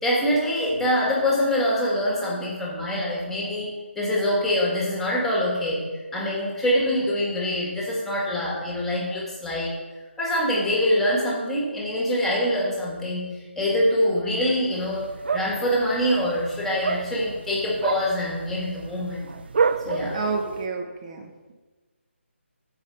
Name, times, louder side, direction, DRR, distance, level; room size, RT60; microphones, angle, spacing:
voice 1, 0.0-3.7 3.9-5.9 6.1-9.8 10.2-15.1 15.3-19.3 19.8-20.2, left 1 dB, 5° left, -5 dB, 1.7 m, -24 dB
sound 1, 14.7-20.7, right 5 dB, 50° right, 0.4 m, -30 dB
voice 2, 20.1-21.5, right 4 dB, 30° right, 3 dB, 1.2 m, -30 dB
7.1 x 5.4 x 6.9 m, 1.3 s
figure-of-eight pair, 155°, 7 cm